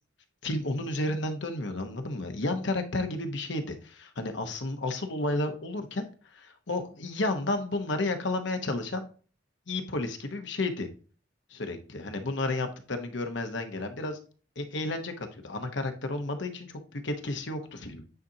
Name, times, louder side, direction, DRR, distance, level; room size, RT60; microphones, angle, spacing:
voice 1, 0.4-9.1 9.7-10.9 11.5-14.2 14.6-18.0, left 2 dB, 65° left, 6 dB, 1.0 m, -32 dB
9.2 x 4.1 x 2.8 m, 0.38 s
head